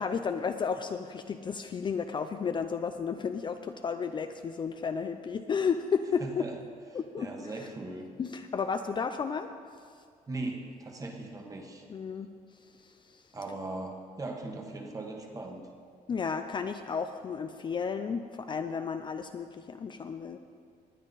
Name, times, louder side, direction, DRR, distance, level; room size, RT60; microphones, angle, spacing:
voice 1, 0.0-6.5 6.9-7.7 8.2-9.5 11.9-12.3 12.8-13.2 16.1-20.4, left 6 dB, 30° left, 8 dB, 0.4 m, -33 dB
voice 2, 6.2-6.5 7.2-8.1 10.3-11.8 13.3-15.7, right 2 dB, 20° right, 2 dB, 1.4 m, -39 dB
19.5 x 9.3 x 4.0 m, 2.1 s
cardioid pair, 155°, 15 cm